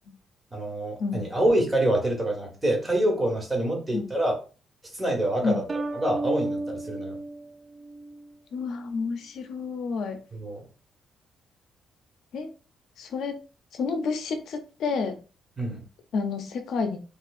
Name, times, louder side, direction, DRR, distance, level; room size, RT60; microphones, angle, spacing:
voice 1, 0.5-4.4 4.9-5.6 5.9-7.1 10.3-10.6 15.6-15.8, right 1 dB, 20° right, 0 dB, 1.5 m, -26 dB
sound 1, 5.7-8.3, right 2 dB, 35° right, 0.5 m, -33 dB
voice 2, 8.5-10.2 12.3-12.5 13.0-13.4 13.7-15.2 16.1-17.0, left 4 dB, 70° left, 7 dB, 0.5 m, -29 dB
4.3 x 2.4 x 2.5 m, 0.35 s
cardioid pair, 90°, 0 cm